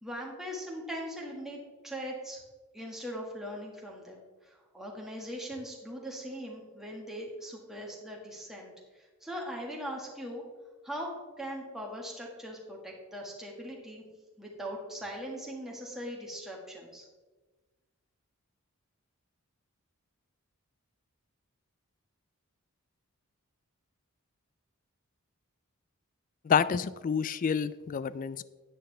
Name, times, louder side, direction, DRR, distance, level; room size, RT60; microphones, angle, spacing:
voice 1, 0.0-2.4 2.7-10.4 10.8-14.0 14.4-17.1, equal, ahead, -2 dB, 1.7 m, -40 dB
voice 2, 26.4-28.4, left 7 dB, 35° left, 17 dB, 0.3 m, -28 dB
10.0 x 9.1 x 3.3 m, 1.3 s
head